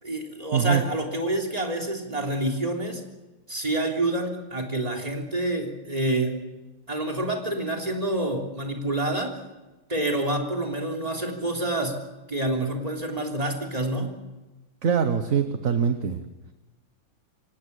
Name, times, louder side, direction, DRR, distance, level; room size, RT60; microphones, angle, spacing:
voice 1, 0.0-3.0 3.5-6.4 6.9-9.4 9.9-12.0 12.3-14.2, right 1 dB, 20° right, 1 dB, 3.5 m, -27 dB
voice 2, 0.5-0.8 14.8-16.2, right 7 dB, 45° right, 8 dB, 1.5 m, -23 dB
25.5 x 18.0 x 8.3 m, 1.1 s
omnidirectional pair, 2.2 m